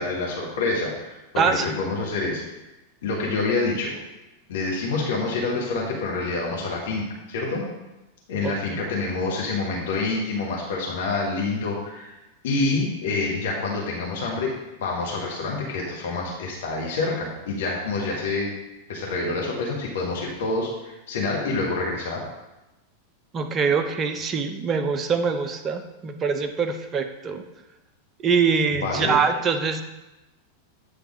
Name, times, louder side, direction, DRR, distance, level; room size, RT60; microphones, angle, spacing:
voice 1, 0.0-2.4 3.0-3.9 4.5-7.0 7.3-7.6 8.3-12.1 12.4-14.5 14.8-18.5 18.9-22.2 28.7-29.2, left 3 dB, 55° left, -2 dB, 1.3 m, -27 dB
voice 2, 1.4-1.7 8.4-8.5 23.3-27.4 28.2-29.8, right 5 dB, 25° right, 8 dB, 0.6 m, -24 dB
8.9 x 3.4 x 4.9 m, 1.0 s
figure-of-eight pair, 90°, 0 cm